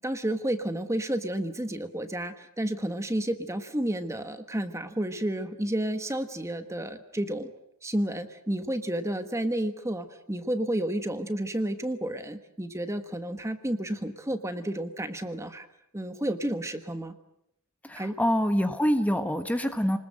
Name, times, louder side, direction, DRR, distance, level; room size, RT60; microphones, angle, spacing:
voice 1, 0.0-7.5 7.8-15.7 15.9-17.1 18.0-18.2, right 1 dB, 15° right, 9 dB, 1.3 m, -31 dB
voice 2, 17.8-20.0, equal, 5° left, 8 dB, 1.3 m, -25 dB
29.0 x 20.5 x 7.8 m, 0.76 s
head